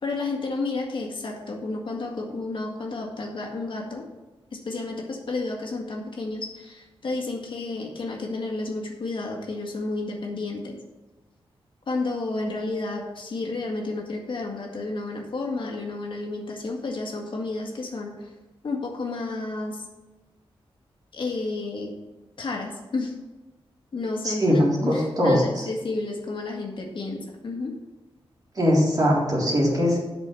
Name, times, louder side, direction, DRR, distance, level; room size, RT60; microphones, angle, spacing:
voice 1, 0.0-4.1 4.5-10.8 11.9-18.3 18.6-19.9 21.1-21.9 22.4-23.1 23.9-27.8, left 3 dB, 60° left, 0 dB, 1.8 m, -31 dB
voice 2, 24.2-25.6 28.6-30.0, equal, 40° right, -5 dB, 3.5 m, -21 dB
8.4 x 6.2 x 7.0 m, 1.2 s
wide cardioid pair, 110°, 10 cm